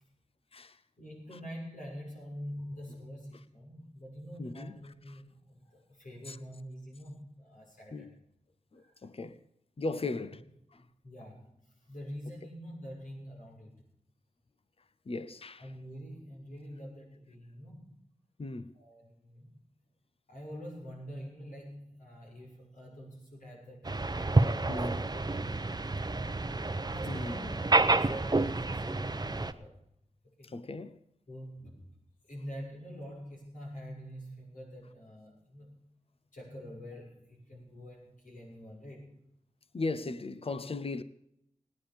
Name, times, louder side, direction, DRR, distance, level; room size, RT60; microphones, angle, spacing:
voice 1, 1.0-8.1 8.8-8.9 10.8-11.5 11.9-13.8 15.6-18.0 18.8-19.6 20.3-26.3 26.9-29.7 30.4-30.5 31.3-31.8 32.3-35.8 36.3-39.2, equal, 85° left, 6.3 m, -46 dB
voice 2, 4.4-5.2 6.3-6.4 7.9-8.2 8.7-9.4 9.8-10.4 10.7-10.8 15.1-15.7 18.4-18.7 24.7-25.0 27.0-27.4 30.4-31.0 39.7-41.0, left 3 dB, 45° left, 0.8 m, -38 dB
sound 1, 23.8-29.5, right 2 dB, 30° right, 0.8 m, -29 dB
17.5 x 9.9 x 7.1 m
wide cardioid pair, 60°, 13 cm